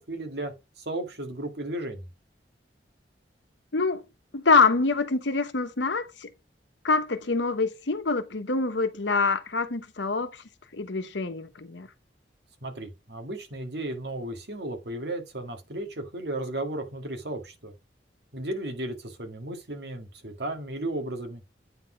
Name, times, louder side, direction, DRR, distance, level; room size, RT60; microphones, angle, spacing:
voice 1, 0.0-2.1 12.6-17.7 18.3-21.4, right 1 dB, 65° right, 1.9 m, -34 dB
voice 2, 3.7-4.0 4.3-6.3 6.8-10.3 10.7-11.9, left 4 dB, 85° left, 1.0 m, -25 dB
8.9 x 4.0 x 5.1 m
head